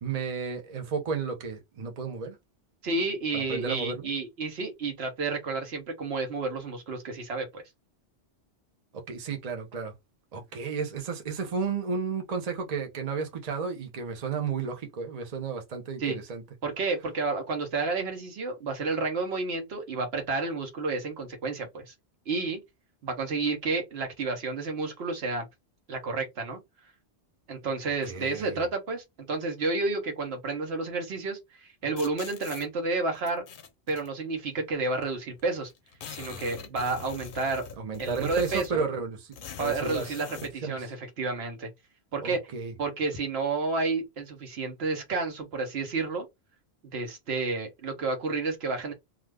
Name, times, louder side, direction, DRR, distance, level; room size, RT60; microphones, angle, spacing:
voice 1, 0.0-2.4 3.3-4.1 8.9-9.9 10.3-16.4 28.1-28.6 37.8-39.2 39.6-40.1 40.6-40.9 42.2-42.7, right 5 dB, 40° right, 0.7 m, -33 dB
voice 2, 2.8-7.6 16.0-16.2 16.6-21.9 22.3-22.6 23.0-25.4 25.9-26.6 27.5-33.4 33.9-35.7 36.1-37.7 38.0-38.8 39.6-41.7 42.1-42.4 42.8-46.3 46.9-48.9, right 3 dB, 70° right, 1.0 m, -30 dB
sound 1, 32.0-32.7 33.3-34.1 35.0-35.1 35.4-35.5 35.7-38.8 39.3-40.5, left 7 dB, 60° left, 0.7 m, -42 dB
2.4 x 2.4 x 3.2 m
omnidirectional pair, 1.1 m